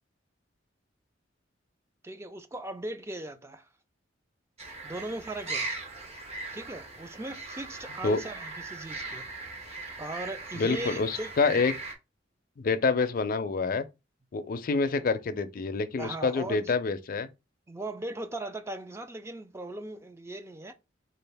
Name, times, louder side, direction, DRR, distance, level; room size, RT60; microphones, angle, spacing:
voice 1, 2.0-3.7 4.8-5.7 6.5-9.3 10.0-11.3 16.0-16.7 17.7-20.7, right 2 dB, 15° right, 0.4 m, -38 dB
sound 1, 4.6-11.9, right 3 dB, 35° right, 0.9 m, -39 dB
voice 2, 10.6-11.7 12.6-13.8 14.3-17.3, left 4 dB, 50° left, 0.4 m, -27 dB
3.9 x 2.4 x 3.4 m
head